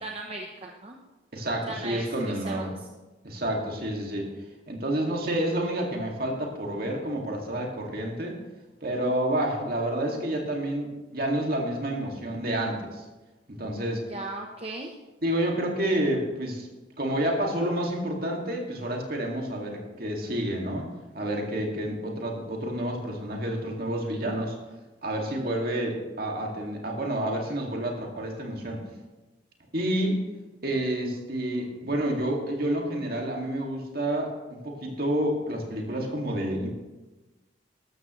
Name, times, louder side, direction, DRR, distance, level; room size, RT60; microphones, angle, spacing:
voice 1, 0.0-1.0 1.6-2.9 14.1-15.0, right 2 dB, 30° right, 1 dB, 0.8 m, -37 dB
voice 2, 1.3-2.7 3.2-4.3 4.7-8.4 8.8-13.0 13.5-14.0 15.2-16.7 17.0-20.9 21.1-24.6 25.0-28.8 29.7-30.2 30.6-36.7, right 1 dB, 50° right, 0 dB, 2.2 m, -29 dB
13.5 x 13.0 x 3.2 m, 1.1 s
head